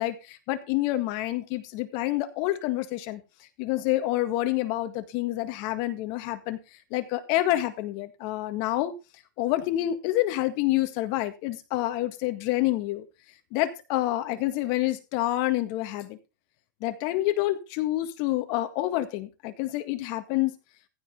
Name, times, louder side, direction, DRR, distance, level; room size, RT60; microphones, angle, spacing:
voice 1, 0.0-3.2 3.6-6.6 6.9-8.9 9.4-13.1 13.5-16.2 16.8-20.5, left 15 dB, 45° left, 9 dB, 1.7 m, -28 dB
15.0 x 5.2 x 5.3 m, 0.29 s
supercardioid pair, 150°, 10 cm